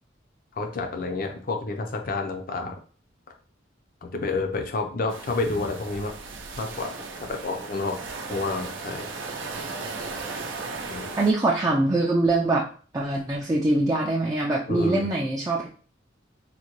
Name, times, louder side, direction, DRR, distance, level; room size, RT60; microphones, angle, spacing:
voice 1, 0.6-2.8 4.0-6.2 6.6-7.0 7.3-8.0 8.3-9.1 10.9-11.1 14.7-15.1, left 3 dB, 50° left, 4 dB, 0.5 m, -29 dB
sound 1, 5.1-11.3, right 4 dB, 85° right, 0.5 m, -36 dB
voice 2, 11.2-12.7 12.9-15.7, right 2 dB, 20° right, -3 dB, 0.3 m, -23 dB
3.7 x 2.2 x 3.0 m, 0.42 s
head